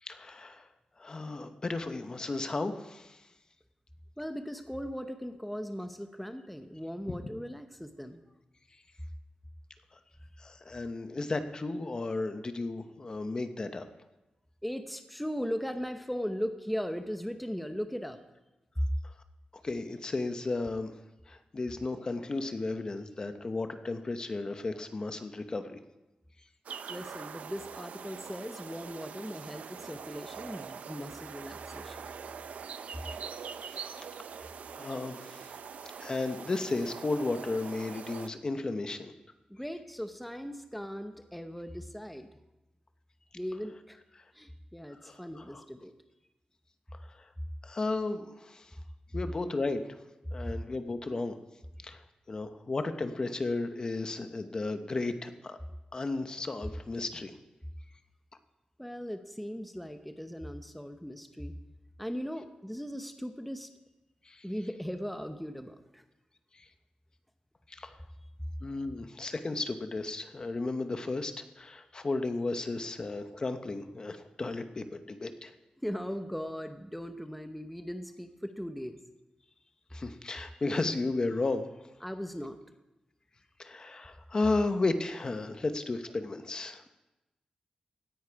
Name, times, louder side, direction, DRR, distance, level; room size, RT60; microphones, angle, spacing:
voice 1, 0.0-0.7 1.0-3.2 7.1-7.2 10.4-13.9 19.5-20.9 21.3-25.8 33.7-33.9 34.4-35.5 36.0-39.1 45.0-45.6 47.0-47.3 47.6-48.7 49.1-49.8 50.3-51.4 51.8-55.6 55.9-57.3 64.3-64.4 66.5-66.7 67.7-68.0 68.6-75.5 79.9-81.7 83.6-86.8, left 3 dB, 35° left, 9 dB, 0.9 m, -34 dB
voice 2, 4.2-8.2 14.6-18.2 18.8-18.9 26.9-32.1 39.5-42.3 43.3-44.0 44.3-45.9 58.8-61.5 62.0-63.7 64.4-66.0 75.8-79.0 80.4-80.6 82.0-82.6, equal, ahead, 7 dB, 0.8 m, -38 dB
sound 1, 26.7-38.3, right 6 dB, 80° right, 0.6 m, -43 dB
17.0 x 10.0 x 4.7 m, 1.0 s
wide cardioid pair, 130°, 2 cm